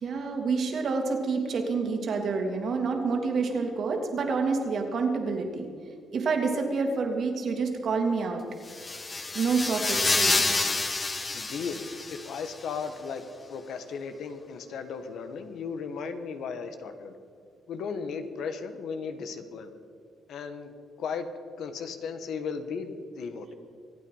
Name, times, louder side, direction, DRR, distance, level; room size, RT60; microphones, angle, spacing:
voice 1, 0.0-5.7 6.1-8.4 9.3-10.7, right 4 dB, 60° right, 3 dB, 2.7 m, -28 dB
sound 1, 8.7-12.5, left 3 dB, 25° left, 1.3 m, -28 dB
voice 2, 11.3-11.8 12.1-17.1 17.7-19.7 20.3-20.7 21.0-21.3 21.6-23.5, left 5 dB, 75° left, 8 dB, 1.5 m, -36 dB
25.0 x 9.0 x 5.6 m, 2.3 s
cardioid pair, 90°, 0 cm